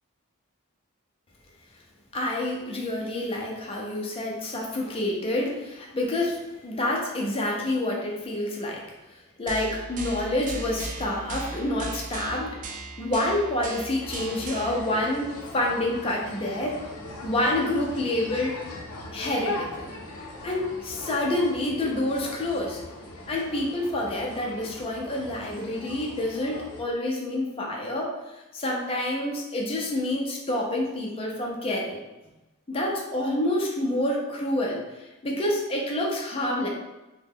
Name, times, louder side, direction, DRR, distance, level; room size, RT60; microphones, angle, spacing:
voice 1, 2.1-8.8 9.1-12.6 13.0-16.8 17.2-18.7 19.1-19.9 20.4-22.8 23.3-32.0 32.7-36.7, left 1 dB, 25° left, -2 dB, 0.5 m, -28 dB
sound 1, 9.5-14.8, right 3 dB, 35° right, 0.3 m, -37 dB
sound 2, 14.0-26.8, left 1 dB, 80° left, 0.6 m, -40 dB
2.9 x 2.2 x 3.5 m, 1.0 s
head